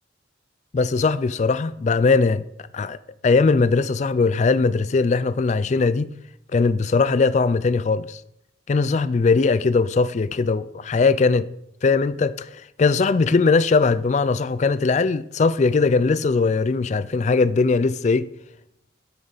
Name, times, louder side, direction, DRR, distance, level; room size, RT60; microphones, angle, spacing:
voice 1, 0.7-2.4 2.7-3.0 3.2-6.1 6.5-8.2 8.7-11.5 11.8-18.3, left 4 dB, 35° left, 0.3 m, -20 dB
9.6 x 8.1 x 3.9 m
head